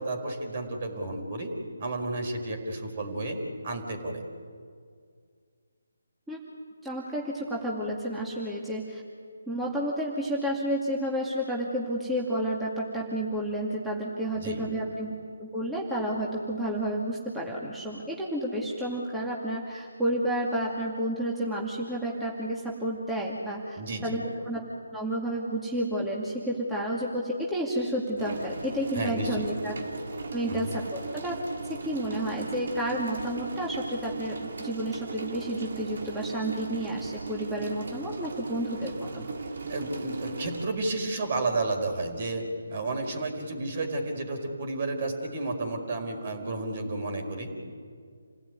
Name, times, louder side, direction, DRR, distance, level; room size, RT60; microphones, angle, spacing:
voice 1, 0.0-1.5 1.8-3.4 3.6-4.2 14.3-14.6 23.8-24.2 28.9-29.5 30.5-30.7 39.7-47.5, right 2 dB, 40° right, 4 dB, 4.9 m, -32 dB
voice 2, 6.8-9.0 9.5-15.1 15.4-24.6 24.9-29.7 30.3-31.3 31.6-39.3, right 1 dB, 5° right, -5 dB, 2.4 m, -31 dB
sound 1, 28.2-40.7, right 3 dB, 60° right, 2.6 m, -37 dB
28.5 x 17.0 x 9.5 m, 2.1 s
figure-of-eight pair, 155°, 0 cm